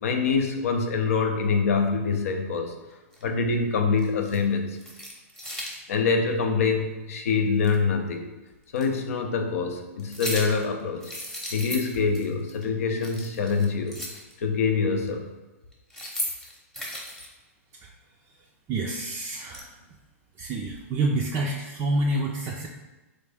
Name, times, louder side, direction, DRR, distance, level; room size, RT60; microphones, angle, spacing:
voice 1, 0.0-2.7 3.2-4.8 5.9-8.3 8.7-11.1 11.5-14.0 14.4-15.3, left 5 dB, 70° left, 5 dB, 0.6 m, -25 dB
sound 1, 3.1-3.2 4.0-4.4 4.7-5.8 7.6-7.7 8.8-8.9 10.0-10.6 11.0-12.2 12.5-12.6 12.9-14.3 15.7-17.3 18.9-19.6, equal, 5° left, 0.8 m, -36 dB
voice 2, 18.7-19.7 20.4-22.7, right 2 dB, 30° right, -1 dB, 0.4 m, -28 dB
3.8 x 2.7 x 3.4 m, 1.1 s
hypercardioid pair, 125°, 8 cm